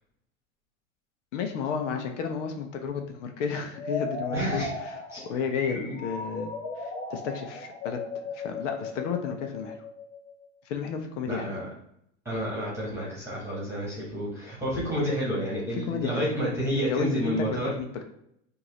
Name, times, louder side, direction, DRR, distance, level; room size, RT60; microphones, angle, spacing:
voice 1, 1.3-6.5 6.8-8.0 8.3-9.8 10.6-11.5 15.7-16.3 16.9-18.0, left 6 dB, 70° left, 5 dB, 0.8 m, -32 dB
sound 1, 3.7-10.4, left 3 dB, 25° left, 1.1 m, -36 dB
voice 2, 4.3-4.7 5.1-5.2 5.7-5.9 11.3-11.6 12.2-17.7, equal, 5° right, -6 dB, 1.6 m, -30 dB
4.5 x 2.6 x 3.1 m, 0.74 s
hypercardioid pair, 110°, 38 cm